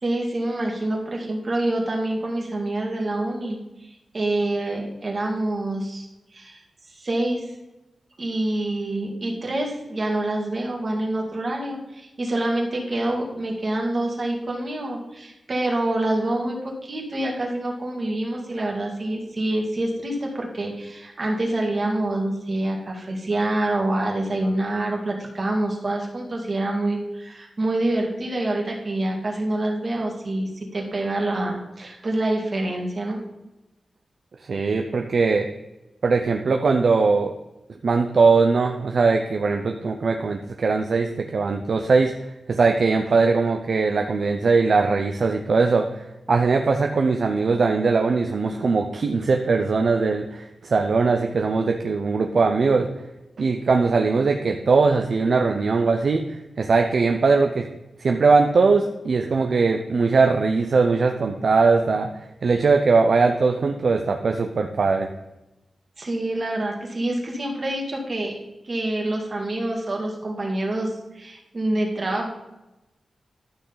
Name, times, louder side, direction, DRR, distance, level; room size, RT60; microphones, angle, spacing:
voice 1, 0.0-6.1 6.3-6.6 6.9-7.5 8.2-33.2 66.0-68.3 68.6-72.3, right 1 dB, 40° right, 0 dB, 2.2 m, -26 dB
voice 2, 34.4-35.5 36.0-37.3 37.8-52.9 53.4-57.7 58.0-65.1, right 4 dB, 60° right, 4 dB, 0.6 m, -20 dB
12.0 x 6.3 x 4.0 m, 0.98 s
wide cardioid pair, 120°, 0 cm